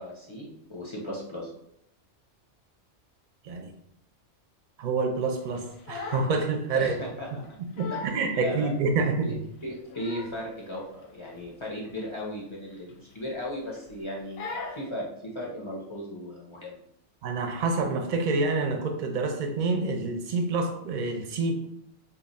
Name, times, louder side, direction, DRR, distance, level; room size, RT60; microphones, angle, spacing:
voice 1, 0.0-1.5 6.7-7.6 7.9-8.7 9.2-9.3 9.6-16.8, left 1 dB, 35° left, -4 dB, 0.5 m, -36 dB
voice 2, 4.8-6.9 7.6-9.4 17.2-21.5, right 3 dB, 55° right, 4 dB, 0.6 m, -27 dB
Crying sobbing, 5.5-6.4 6.7-7.0 7.4-7.5 7.8-8.2 8.7-8.8 9.6-10.5 10.7-11.0 11.3-11.5 11.8-12.0 12.8-13.4 13.7-14.0 14.4-14.9, left 4 dB, 65° left, 0.8 m, -39 dB
2.8 x 2.3 x 4.0 m, 0.76 s
omnidirectional pair, 1.2 m